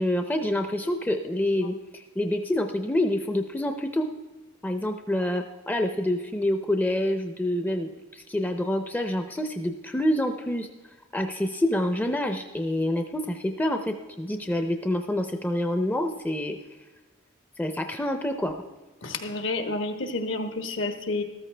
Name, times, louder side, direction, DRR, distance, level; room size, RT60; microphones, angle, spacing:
voice 1, 0.0-4.1 4.6-10.7 11.1-16.6 17.6-18.5, left 1 dB, 10° left, 6 dB, 0.5 m, -27 dB
voice 2, 19.0-21.2, left 2 dB, 70° left, 6 dB, 1.2 m, -30 dB
13.5 x 13.5 x 3.3 m, 1.2 s
head